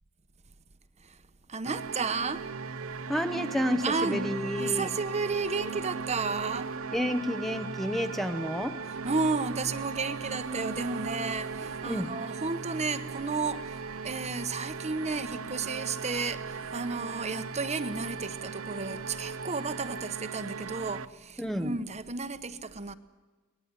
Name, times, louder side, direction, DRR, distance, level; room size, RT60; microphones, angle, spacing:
voice 1, 1.5-2.5 3.8-4.3 4.6-6.7 9.0-22.9, right 4 dB, 30° right, 11 dB, 1.0 m, -32 dB
sound 1, 1.7-21.1, right 5 dB, 65° right, 0.8 m, -38 dB
voice 2, 3.1-4.9 6.9-8.8 11.8-12.1 21.4-21.7, equal, ahead, 8 dB, 0.8 m, -30 dB
24.0 x 19.5 x 9.8 m, 1.3 s
head